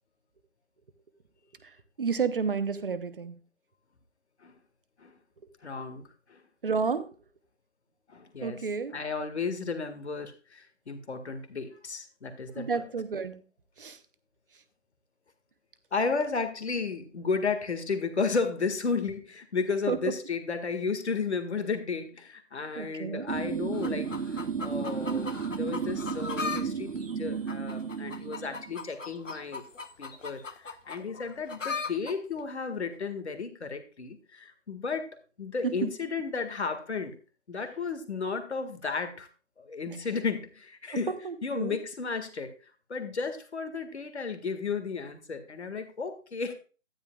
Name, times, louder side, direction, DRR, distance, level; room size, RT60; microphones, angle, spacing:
voice 1, 1.6-3.4 6.6-7.1 8.4-9.0 12.5-13.4 13.8-14.0 19.9-20.0 22.8-23.3 35.6-35.9 40.9-41.8, right 5 dB, 45° right, 1.1 m, -31 dB
voice 2, 5.6-6.4 8.1-8.6 8.9-12.7 15.9-24.1 24.6-29.6 30.0-35.1 35.4-37.2 37.5-39.3 39.6-41.1 41.4-42.5 42.9-46.5, left 4 dB, 60° left, 1.9 m, -33 dB
sound 1, 23.3-28.7, right 6 dB, 80° right, 0.9 m, -33 dB
sound 2, 23.7-26.6 27.0-32.1 32.9-33.0, left 4 dB, 75° left, 1.5 m, -38 dB
12.5 x 10.5 x 2.4 m
figure-of-eight pair, 155°, 38 cm